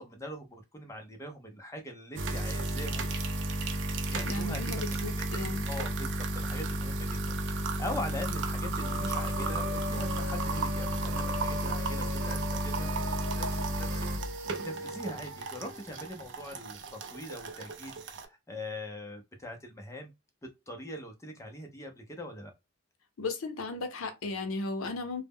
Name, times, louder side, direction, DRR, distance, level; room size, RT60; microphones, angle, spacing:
voice 1, 0.0-3.1 4.1-13.1 13.3-20.1 20.4-22.5, left 1 dB, 15° left, 0.4 m, -42 dB
sound 1, 2.2-18.3, right 1 dB, 55° right, 0.4 m, -33 dB
voice 2, 4.2-5.6 23.2-25.2, left 3 dB, 75° left, 0.6 m, -35 dB
sound 2, 8.8-16.4, left 2 dB, 80° right, 0.7 m, -41 dB
2.0 x 2.0 x 3.4 m
head